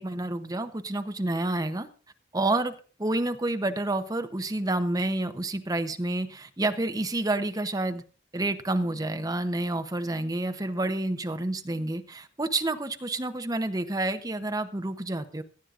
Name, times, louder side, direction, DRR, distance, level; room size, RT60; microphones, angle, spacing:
voice 1, 0.0-1.9 2.3-8.0 8.3-15.4, right 2 dB, 20° right, 0.7 m, -29 dB
17.0 x 11.5 x 2.5 m
head